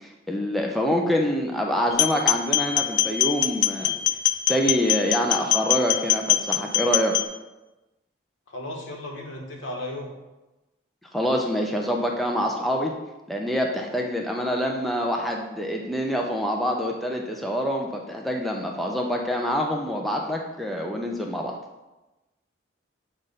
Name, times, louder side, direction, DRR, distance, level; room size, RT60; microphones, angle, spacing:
voice 1, 0.0-3.9 4.5-7.1 11.1-12.9 13.3-21.5, equal, ahead, 0 dB, 0.5 m, -26 dB
sound 1, 1.9-7.3, left 13 dB, 65° left, 0.4 m, -23 dB
voice 2, 8.5-10.1, left 1 dB, 85° left, 0 dB, 1.2 m, -35 dB
7.3 x 2.5 x 5.3 m, 1.0 s
head